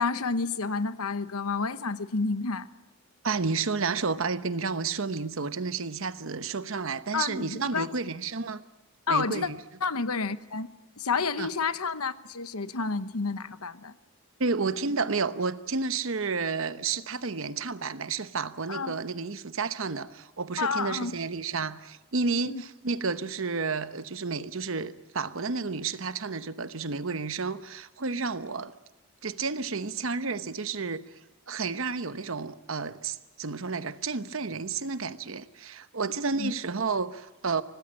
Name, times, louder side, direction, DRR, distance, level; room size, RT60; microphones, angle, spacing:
voice 1, 0.0-2.7 7.1-7.9 9.1-9.5 9.8-10.7 11.0-13.9 18.7-18.9 20.6-21.1 22.5-22.6 36.4-36.5, left 4 dB, 90° left, 1.1 m, -30 dB
voice 2, 3.2-8.6 9.1-9.6 11.4-11.5 14.4-28.7 29.2-31.0 31.5-37.6, right 4 dB, 65° right, 1.0 m, -31 dB
25.5 x 18.5 x 8.7 m
head